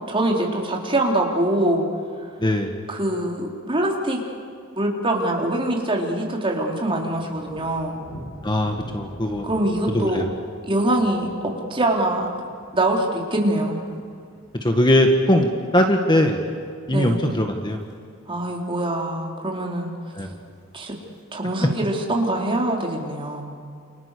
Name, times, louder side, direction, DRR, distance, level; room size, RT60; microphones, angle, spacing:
voice 1, 0.1-1.8 2.9-4.2 4.7-8.0 9.4-10.3 10.7-12.3 12.7-13.8 16.9-17.2 18.3-19.9 20.7-20.9 21.3-23.5, right 1 dB, 25° right, 0 dB, 4.3 m, -23 dB
voice 2, 2.4-2.8 8.4-9.5 9.9-10.3 14.6-15.5 15.7-16.4 16.9-17.8 20.1-20.3, left 1 dB, 20° left, 4 dB, 1.8 m, -20 dB
Thunder, 5.1-5.7 6.0-16.3 16.7-17.0 17.5-17.9 18.2-18.3 18.5-18.6 18.9-19.5 20.3-21.2, equal, 70° left, 7.4 m, -46 dB
29.5 x 29.0 x 6.9 m, 2.2 s
head